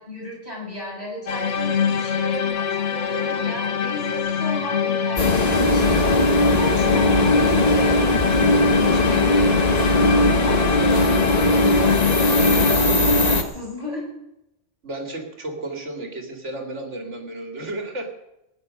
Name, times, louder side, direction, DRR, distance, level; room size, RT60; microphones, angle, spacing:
voice 1, 0.0-6.0 6.5-9.6 10.4-14.1, equal, 30° right, -5 dB, 7.7 m, -34 dB
sound 1, 1.3-12.8, left 7 dB, 70° left, 1.2 m, -24 dB
sound 2, 5.2-13.4, left 1 dB, 35° left, 1.4 m, -19 dB
voice 2, 14.8-18.1, right 2 dB, 70° right, 4 dB, 2.7 m, -33 dB
18.5 x 9.8 x 6.4 m, 0.92 s
omnidirectional pair, 1.3 m